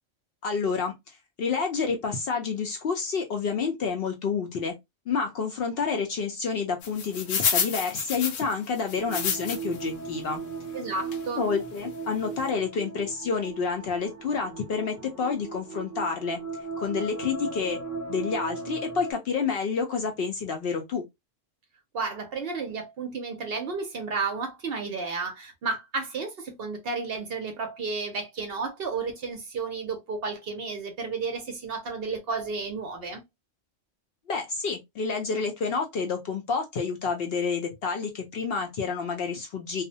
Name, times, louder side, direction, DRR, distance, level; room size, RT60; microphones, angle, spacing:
voice 1, 0.4-4.7 5.1-10.4 11.3-16.4 16.8-17.8 18.1-21.0 34.3-39.8, left 5 dB, 65° left, 0.6 m, -29 dB
sound 1, 6.8-9.8 10.3-10.4 11.1-11.3 11.8-11.9 12.1-12.2, left 7 dB, 90° left, 1.0 m, -29 dB
sound 2, 9.0-19.1, right 4 dB, 25° right, 0.3 m, -37 dB
voice 2, 10.7-11.5 21.9-33.2, right 4 dB, 60° right, 0.7 m, -32 dB
2.4 x 2.0 x 2.6 m
omnidirectional pair, 1.3 m